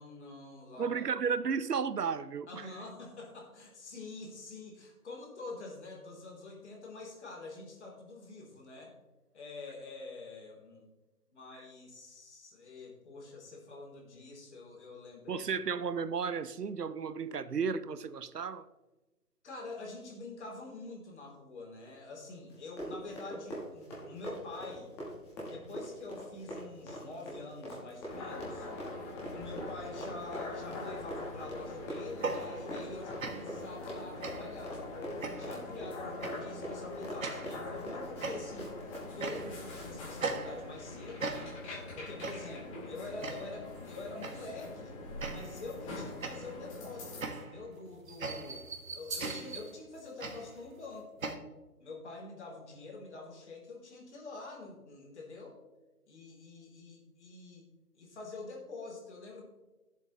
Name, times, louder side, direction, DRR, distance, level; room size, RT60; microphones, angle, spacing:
voice 1, 0.0-1.0 2.5-8.9 9.3-10.9 11.3-15.5 19.4-24.9 25.4-28.7 29.3-38.7 39.1-41.5 41.9-45.0 45.2-48.6 48.9-51.3 51.8-55.6 56.1-57.6 57.9-59.4, left 3 dB, 45° left, 3.2 m, -46 dB
voice 2, 0.8-2.7 15.3-18.7, right 6 dB, 90° right, 0.8 m, -33 dB
Run, 22.5-39.9 40.1-40.4, equal, 5° left, 1.1 m, -44 dB
sound 1, 28.1-47.2, left 2 dB, 20° left, 2.0 m, -44 dB
sound 2, 32.1-32.9 33.2-33.6 34.2-34.6 35.2-35.6 36.2-36.5 37.2-37.6 38.2-38.7 39.2-39.7 40.2-40.9 41.2-41.7 42.2-42.6 43.2-43.6 44.2-44.6 45.2-45.7 46.2-51.3, right 3 dB, 60° right, 1.6 m, -40 dB
16.0 x 7.2 x 3.1 m
figure-of-eight pair, 155°, 46 cm